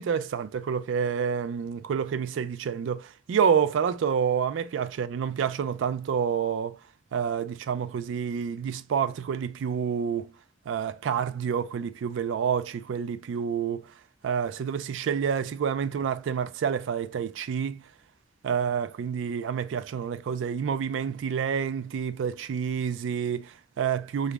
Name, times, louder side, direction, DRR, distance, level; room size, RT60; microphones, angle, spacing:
voice 1, 0.0-6.8 7.1-10.3 10.7-13.8 14.2-17.8 18.4-24.3, right 7 dB, 70° right, 0.3 m, -28 dB
2.5 x 2.0 x 3.2 m
head